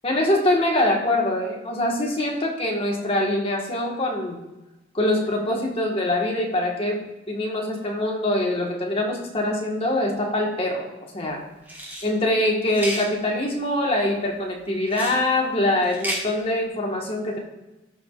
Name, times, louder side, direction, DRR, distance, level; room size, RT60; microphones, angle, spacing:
voice 1, 0.0-4.4 4.9-10.9 11.1-11.4 12.0-17.4, left 1 dB, 30° left, -1 dB, 1.3 m, -24 dB
sound 1, 11.6-12.1 12.7-13.1 14.9-15.2 15.8-16.2, equal, 10° right, 1.2 m, -31 dB
13.0 x 4.6 x 2.4 m, 1.0 s
head